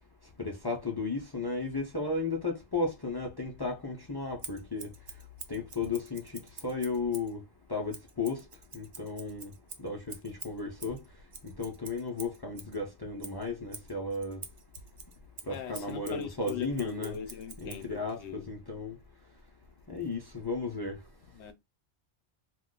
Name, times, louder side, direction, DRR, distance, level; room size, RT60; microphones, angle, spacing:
voice 1, 0.4-4.9 5.5-6.2 6.6-7.4 7.7-8.4 8.7-9.5 9.8-11.0 11.4-14.4 15.5-17.2 17.6-19.0 19.9-21.0, left 3 dB, 35° left, 0.4 m, -34 dB
Scissors, 4.4-7.3 7.9-12.8 13.2-17.9, right 5 dB, 50° right, 0.4 m, -47 dB
voice 2, 15.5-18.5 21.3-21.5, left 7 dB, 80° left, 0.9 m, -40 dB
2.4 x 2.2 x 3.7 m
omnidirectional pair, 1.2 m